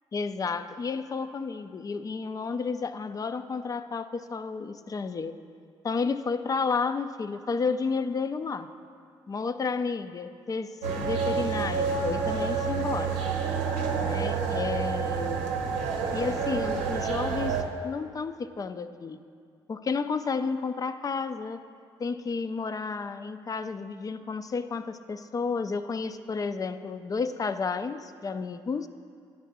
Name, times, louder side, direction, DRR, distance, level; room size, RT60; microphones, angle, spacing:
voice 1, 0.1-5.3 5.8-8.7 9.3-13.2 14.0-15.5 16.1-19.2 19.7-21.6 22.0-28.9, left 4 dB, 30° left, 11 dB, 0.4 m, -31 dB
sound 1, 10.8-17.6, right 6 dB, 85° right, 0.7 m, -28 dB
10.5 x 3.7 x 7.2 m, 2.3 s
supercardioid pair, 55°, 11 cm